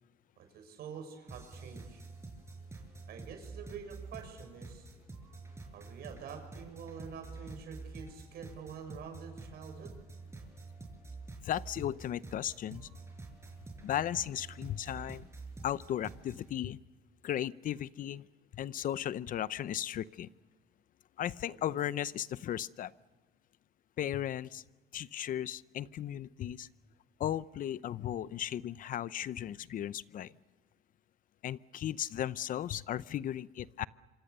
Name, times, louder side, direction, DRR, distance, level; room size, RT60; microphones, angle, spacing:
voice 1, 0.4-2.0 3.1-4.9 5.7-9.9 21.4-21.6, right 6 dB, 70° right, 5 dB, 6.5 m, -47 dB
sound 1, 1.3-16.5, right 3 dB, 15° right, 5.6 m, -48 dB
voice 2, 11.4-12.9 13.8-15.3 15.6-16.8 17.2-18.3 18.5-20.3 21.2-22.9 24.0-24.6 24.9-26.7 27.2-30.3 31.4-33.9, left 11 dB, 55° left, 18 dB, 0.7 m, -36 dB
26.5 x 25.0 x 6.8 m, 1.3 s
cardioid pair, 110°, 17 cm